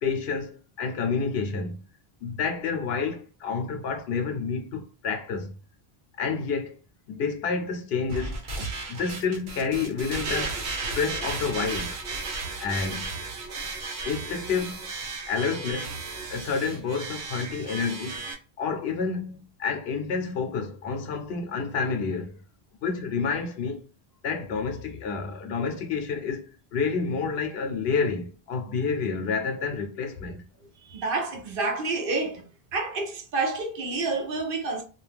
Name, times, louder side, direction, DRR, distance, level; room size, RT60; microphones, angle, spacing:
voice 1, 0.0-1.8 2.2-5.5 6.2-6.8 7.1-8.3 8.9-10.6 10.9-11.9 12.6-13.0 14.0-14.8 15.3-16.0 16.3-18.3 18.6-22.4 22.8-23.8 24.2-30.4, left 5 dB, 75° left, 0.8 m, -29 dB
sound 1, 8.1-18.3, right 3 dB, 90° right, 1.0 m, -34 dB
voice 2, 30.8-32.5 32.7-34.8, right 3 dB, 65° right, 0.7 m, -29 dB
2.4 x 2.2 x 3.3 m
omnidirectional pair, 1.0 m